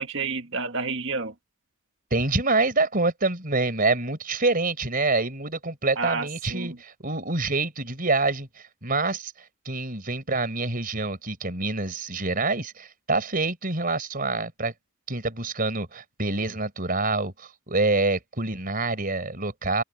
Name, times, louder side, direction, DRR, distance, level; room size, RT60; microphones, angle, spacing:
voice 1, 0.0-1.3 6.0-6.8, right 4 dB, 60° right, 2.0 m, -30 dB
voice 2, 2.1-8.5 8.8-9.3 9.6-14.7 15.1-19.8, right 3 dB, 40° right, 4.5 m, -26 dB
open air
head